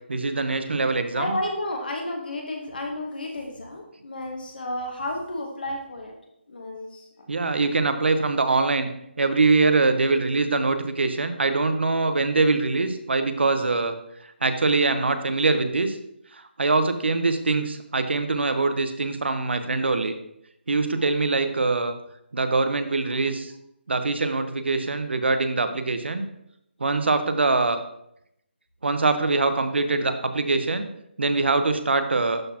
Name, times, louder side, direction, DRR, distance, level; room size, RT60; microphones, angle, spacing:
voice 1, 0.1-1.4 7.3-8.9 9.2-14.0 14.4-16.0 16.3-20.1 20.7-21.9 22.3-23.5 23.9-26.2 26.8-27.8 28.8-30.9 31.2-32.4, right 3 dB, 65° right, 9 dB, 0.8 m, -23 dB
voice 2, 1.1-6.1 6.5-7.3 7.6-7.7, left 1 dB, 50° left, 2 dB, 1.2 m, -32 dB
12.0 x 4.1 x 2.8 m, 0.77 s
hypercardioid pair, 180°, 6 cm